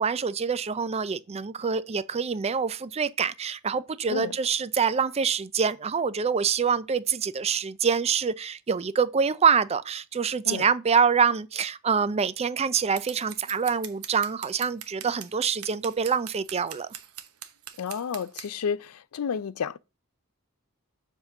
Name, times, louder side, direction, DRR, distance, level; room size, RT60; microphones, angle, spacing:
voice 1, 0.0-16.9, right 6 dB, 30° right, 0.4 m, -25 dB
Scissors, 13.0-18.5, right 11 dB, 85° right, 1.0 m, -41 dB
voice 2, 17.8-19.8, left 6 dB, 75° left, 0.4 m, -31 dB
7.3 x 3.6 x 6.5 m
head